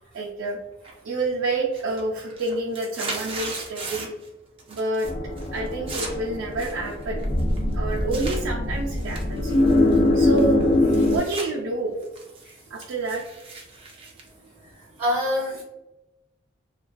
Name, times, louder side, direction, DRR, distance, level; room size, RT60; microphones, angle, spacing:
voice 1, 0.1-0.6 1.0-4.1 4.7-5.1 5.5-7.3 7.7-9.5 10.1-10.7 11.1-12.0 12.7-13.2, right 2 dB, 85° right, -4 dB, 0.4 m, -28 dB
sound 1, 0.8-1.3 1.6-4.3 4.6-5.1 5.4-8.4 8.9-11.5 11.9-15.0, right 3 dB, 30° right, 0.4 m, -38 dB
sound 2, 5.0-11.2, left 1 dB, 35° left, 0.4 m, -23 dB
voice 2, 14.6-15.6, left 1 dB, 10° right, -5 dB, 0.8 m, -27 dB
2.5 x 2.3 x 2.2 m, 0.98 s
head